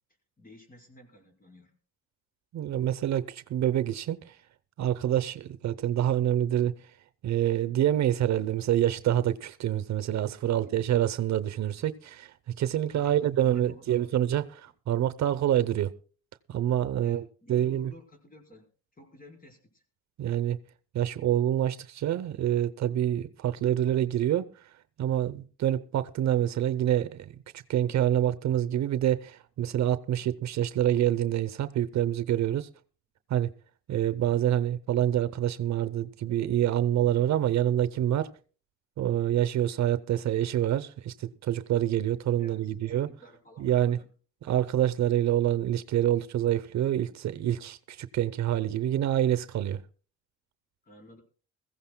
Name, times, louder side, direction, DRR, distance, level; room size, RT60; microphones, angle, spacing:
voice 1, 0.4-1.8 10.5-10.9 12.9-14.3 17.0-18.7 18.9-19.8 42.4-44.1 50.8-51.2, equal, 30° left, 4.6 m, -52 dB
voice 2, 2.5-4.4 4.8-6.8 7.2-15.9 16.5-17.2 17.5-17.9 20.2-20.6 20.9-24.5 25.0-32.7 33.3-33.5 33.9-38.3 39.0-43.1 43.6-44.0 44.4-49.8, right 11 dB, 65° right, 0.8 m, -27 dB
21.5 x 15.5 x 2.2 m
cardioid pair, 90°, 30 cm